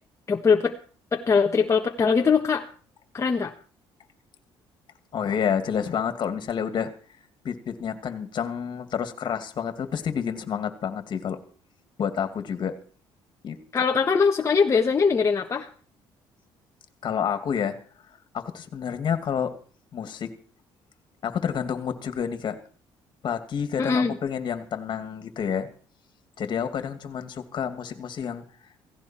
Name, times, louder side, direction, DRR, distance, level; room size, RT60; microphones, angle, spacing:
voice 1, 0.3-0.7 1.1-2.6 3.1-3.5 13.7-15.7 23.8-24.1, left 5 dB, 30° left, 2 dB, 1.4 m, -21 dB
voice 2, 5.1-6.9 7.4-11.4 12.0-12.7 13.4-13.6 17.0-17.8 18.3-19.5 19.9-20.3 21.2-22.6 23.2-25.7 26.4-28.4, left 7 dB, 50° left, 8 dB, 2.4 m, -29 dB
16.5 x 16.5 x 4.5 m, 0.42 s
cardioid pair, 105°, 10 cm